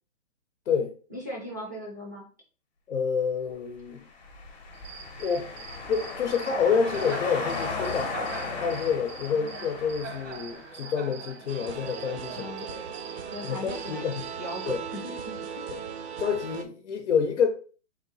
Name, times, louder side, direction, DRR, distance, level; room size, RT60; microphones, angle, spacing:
voice 1, 1.1-2.2 12.3-12.7 13.3-15.7, equal, 15° right, 0.4 m, -39 dB
voice 2, 2.9-4.0 5.2-5.5 5.9-8.2 8.6-12.8 13.4-14.2 14.7-14.8 15.7-15.8 16.2-17.5, left 6 dB, 65° left, 0.7 m, -28 dB
sound 1, 4.1-10.9, left 4 dB, 35° left, 0.9 m, -36 dB
Cricket, 4.7-14.8, right 5 dB, 80° right, 1.0 m, -42 dB
sound 2, 11.5-16.6, right 7 dB, 60° right, 0.6 m, -38 dB
3.6 x 2.7 x 3.8 m
hypercardioid pair, 170°, 37 cm